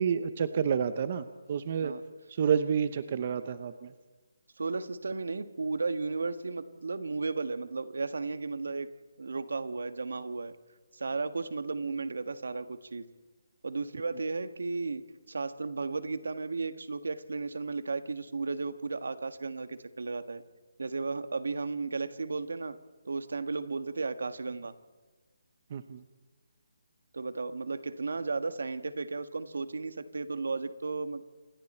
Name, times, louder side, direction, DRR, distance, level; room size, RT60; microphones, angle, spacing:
voice 1, 0.0-1.9 2.3-3.9 25.7-26.0, right 7 dB, 30° right, 12 dB, 0.7 m, -29 dB
voice 2, 4.6-8.9 9.2-10.6 10.9-13.1 13.6-20.4 20.8-22.8 23.0-24.7 27.1-31.2, right 3 dB, 80° right, 11 dB, 1.6 m, -34 dB
27.0 x 23.0 x 4.4 m, 1.3 s
hypercardioid pair, 180°, 0 cm